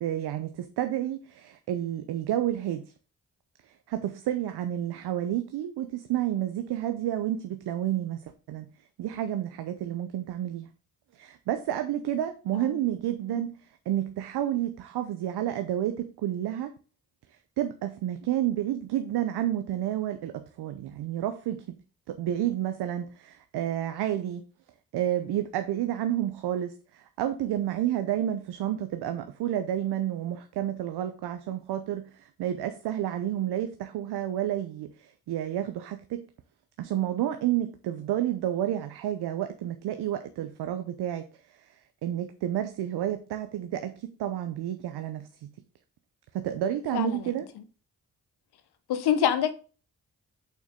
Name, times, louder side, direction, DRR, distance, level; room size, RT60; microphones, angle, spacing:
voice 1, 0.0-2.8 3.9-8.7 9.0-10.7 11.1-13.5 13.9-16.7 17.6-21.8 22.1-24.4 24.9-36.2 36.8-41.3 42.0-45.5 46.3-47.5, right 12 dB, 85° right, 0.7 m, -30 dB
voice 2, 46.9-47.2 48.9-49.5, left 9 dB, 90° left, 1.0 m, -26 dB
6.9 x 5.8 x 3.7 m
supercardioid pair, 50°, 38 cm